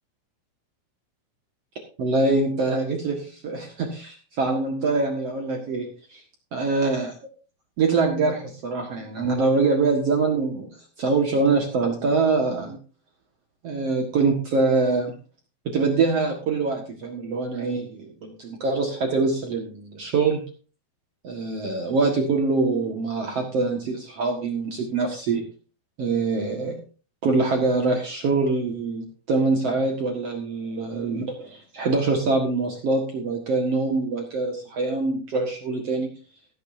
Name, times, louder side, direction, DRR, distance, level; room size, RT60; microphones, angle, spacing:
voice 1, 2.0-6.2 6.5-7.1 7.8-10.7 11.0-12.8 13.6-15.1 15.6-20.4 21.2-25.5 26.0-26.8 27.2-36.1, right 3 dB, 85° right, 2 dB, 1.3 m, -24 dB
16.0 x 12.5 x 2.7 m, 0.36 s
omnidirectional pair, 5.8 m